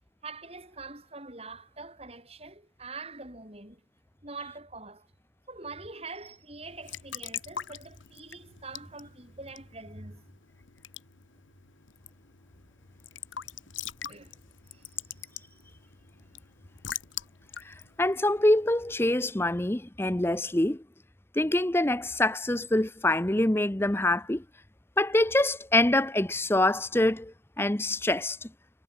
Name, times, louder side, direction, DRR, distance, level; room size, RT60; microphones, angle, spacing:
voice 1, 0.2-3.8 4.2-5.1 5.5-10.3 14.1-14.4 14.7-15.7 16.3-16.4, right 3 dB, 30° right, 7.2 m, -44 dB
Raindrop / Drip / Trickle dribble, 6.6-19.1, left 9 dB, 90° left, 1.9 m, -43 dB
voice 2, 17.6-20.8 21.3-24.4 25.0-28.5, left 1 dB, 10° left, 0.7 m, -25 dB
head